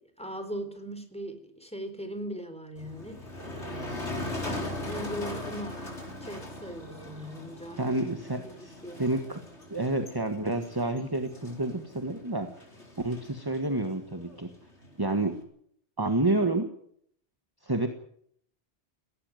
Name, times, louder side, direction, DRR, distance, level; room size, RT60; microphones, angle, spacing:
voice 1, 0.2-3.2 4.4-8.0 8.8-9.0, equal, 5° left, 8 dB, 3.9 m, -39 dB
Motor vehicle (road), 2.8-15.4, left 1 dB, 85° left, 4.8 m, -40 dB
voice 2, 7.8-9.4 9.7-12.5 13.0-14.5 15.0-15.4 16.0-16.7 17.6-17.9, right 2 dB, 20° right, 7 dB, 1.6 m, -29 dB
19.0 x 17.5 x 9.1 m, 0.67 s
omnidirectional pair, 1.1 m